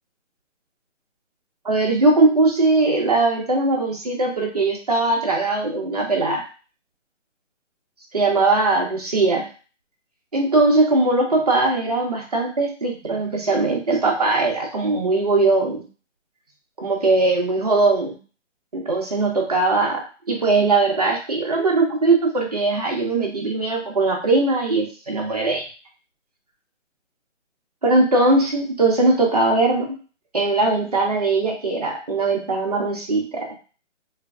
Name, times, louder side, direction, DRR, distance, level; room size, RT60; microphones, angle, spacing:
voice 1, 1.6-6.4 8.1-9.5 10.3-15.8 16.8-18.2 18.7-20.0 20.3-25.7 27.8-29.9 30.3-33.5, right 3 dB, 35° right, 0 dB, 0.5 m, -20 dB
3.2 x 2.3 x 2.3 m, 0.36 s
hypercardioid pair, 160°, 38 cm